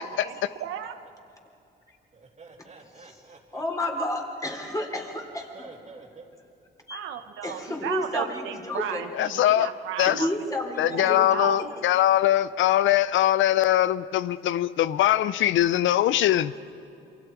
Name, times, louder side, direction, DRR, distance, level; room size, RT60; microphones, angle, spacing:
voice 1, 0.2-1.0 6.9-11.9, right 9 dB, 85° right, 7 dB, 1.2 m, -35 dB
voice 2, 2.1-3.6 5.5-6.3 7.7-7.8, right 4 dB, 35° right, 2 dB, 2.8 m, -48 dB
voice 3, 3.5-5.7 6.9-7.1 7.4-9.0 10.1-11.3, left 1 dB, 15° left, 2 dB, 3.8 m, -31 dB
voice 4, 9.1-9.7 10.0-10.2 10.8-16.5, left 13 dB, 75° left, 16 dB, 0.5 m, -22 dB
28.0 x 23.5 x 4.7 m, 2.7 s
cardioid pair, 90°, 20 cm